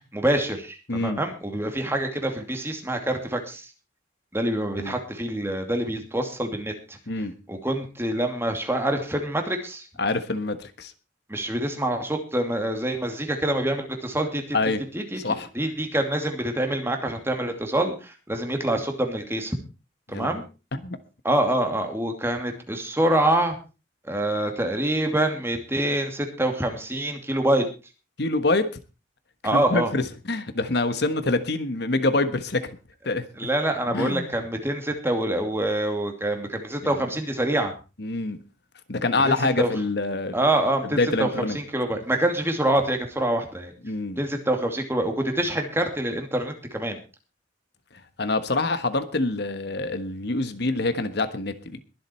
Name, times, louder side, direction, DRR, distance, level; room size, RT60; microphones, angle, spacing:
voice 1, 0.1-3.7 4.3-7.0 7.5-9.9 11.3-14.6 14.9-19.6 20.1-20.4 21.2-23.5 24.1-27.7 29.4-29.9 33.4-37.7 39.2-39.7 40.3-41.3 41.5-43.7 44.2-47.0, right 1 dB, 15° right, 2.6 m, -26 dB
voice 2, 0.9-1.2 4.8-4.9 7.1-7.3 10.0-10.9 14.5-14.8 15.2-15.5 20.1-20.3 20.7-21.0 28.2-28.7 29.5-32.8 33.0-33.3 33.9-34.3 36.8-36.9 38.0-38.4 38.9-40.4 40.8-41.6 43.8-44.2 48.2-51.8, left 2 dB, 60° left, 1.4 m, -26 dB
22.0 x 7.8 x 4.4 m
head